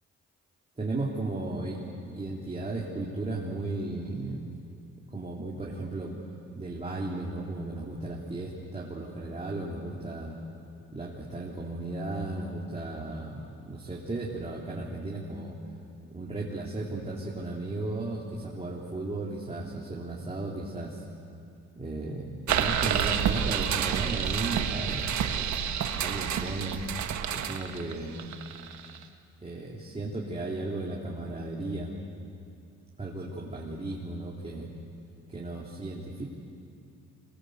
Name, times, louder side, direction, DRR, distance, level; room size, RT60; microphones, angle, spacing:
voice 1, 0.8-4.5 5.1-6.2 6.5-10.4 10.9-15.6 16.1-21.0 21.8-25.7 26.0-26.8 27.3-28.3 29.4-31.9 33.0-34.7 35.3-36.2, right 2 dB, 20° right, -4 dB, 3.4 m, -35 dB
sound 1, 22.5-29.0, right 8 dB, 70° right, 1.5 m, -29 dB
26.0 x 23.0 x 8.1 m, 2.5 s
cardioid pair, 90°, 30 cm